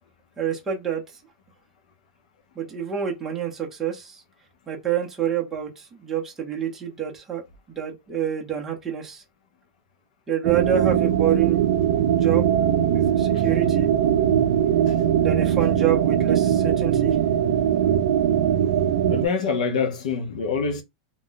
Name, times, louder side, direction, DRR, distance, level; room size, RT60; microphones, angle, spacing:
voice 1, 0.4-1.0 2.6-4.2 4.7-7.4 7.7-9.2 10.3-11.7 12.1-12.5 12.9-13.9 15.2-17.2, right 9 dB, 10° right, 0.6 m, -27 dB
sound 1, 10.4-19.3, right 9 dB, 65° right, 0.4 m, -20 dB
voice 2, 19.1-20.8, left 5 dB, 70° left, 0.7 m, -25 dB
2.5 x 2.1 x 3.8 m
supercardioid pair, 180°, 4 cm